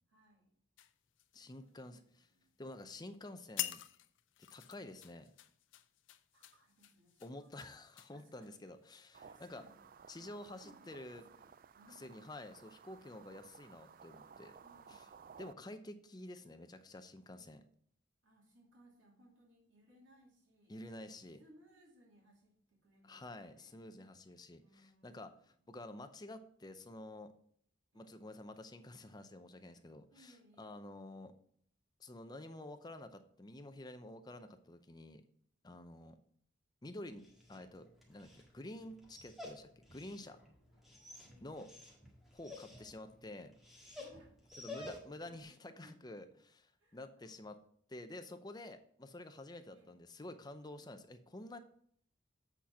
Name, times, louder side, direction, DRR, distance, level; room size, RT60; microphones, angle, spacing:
voice 1, 0.1-0.6 1.4-2.6 4.5-4.7 6.3-7.7 8.1-8.6 9.2-9.8 10.1-12.3 14.6-15.3 18.2-20.7 21.4-23.8 24.6-25.5 27.9-28.2 30.1-30.8 36.0-36.2 40.7-40.8 41.1-41.6 42.5-42.6 44.0-45.9 46.8-47.4 49.7-50.0, right 1 dB, 90° right, -2 dB, 2.6 m, -66 dB
sound 1, 0.8-2.0 2.4-2.7 3.2-3.3 3.6-8.9 9.4-9.6, left 14 dB, 80° left, 0.5 m, -47 dB
voice 2, 1.3-2.3 2.6-3.8 4.4-5.3 7.2-9.6 10.1-11.2 11.9-14.6 14.9-15.0 15.4-17.6 20.7-21.4 23.0-27.3 27.9-31.3 32.0-35.2 35.6-36.2 36.8-38.3 38.5-40.4 41.4-41.7 42.3-43.5 44.6-46.3 46.5-46.6 46.9-47.6 47.9-51.6, left 1 dB, 20° left, 9 dB, 0.6 m, -50 dB
sound 2, 9.1-15.5, right 6 dB, 45° right, 0.3 m, -58 dB
Dog, 37.1-45.3, left 2 dB, ahead, 1.7 m, -53 dB
8.0 x 4.3 x 6.1 m, 0.64 s
head